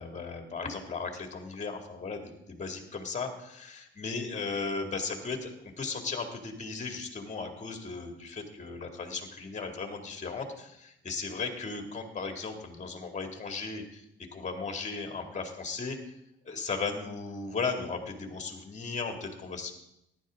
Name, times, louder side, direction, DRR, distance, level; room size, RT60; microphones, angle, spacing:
voice 1, 0.0-14.0 14.3-16.0 16.4-19.7, left 4 dB, 35° left, 3 dB, 2.4 m, -36 dB
14.5 x 11.5 x 3.7 m, 0.81 s
cardioid pair, 90°, 20 cm